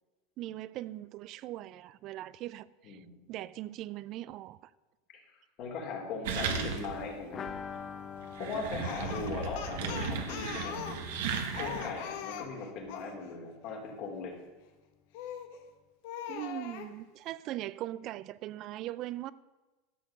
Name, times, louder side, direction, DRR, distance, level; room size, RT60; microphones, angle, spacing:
voice 1, 0.4-4.7 16.3-19.3, right 15 dB, 50° right, 0.4 m, -40 dB
voice 2, 2.8-3.3 5.1-5.2 5.6-7.5 8.4-11.3 11.6-14.3, left 4 dB, 55° left, 2.8 m, -39 dB
sound 1, 6.2-7.1 7.5-7.6 8.2-12.0, right 6 dB, 80° right, 1.3 m, -36 dB
sound 2, 7.3-12.9 13.2-13.3 13.6-13.7, left 7 dB, 30° left, 0.5 m, -47 dB
Speech, 8.8-13.1 15.1-15.6 16.0-16.9, left 9 dB, 70° left, 1.2 m, -41 dB
11.5 x 6.7 x 6.3 m
supercardioid pair, 115°, 0 cm